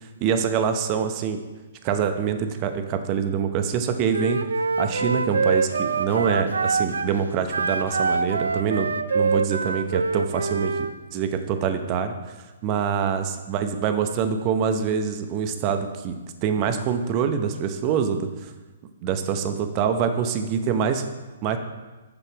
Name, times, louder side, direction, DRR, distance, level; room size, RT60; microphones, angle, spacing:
voice 1, 0.2-1.4 1.8-4.4 4.8-12.4 12.6-16.2 16.4-18.5 19.0-21.0 21.4-21.6, right 7 dB, 35° right, 7 dB, 0.7 m, -25 dB
Wind instrument woodwind instrument, 4.1-7.1 7.5-10.9, right 4 dB, 90° right, 0.4 m, -25 dB
6.9 x 5.7 x 4.6 m, 1.2 s
hypercardioid pair, 140°, 0 cm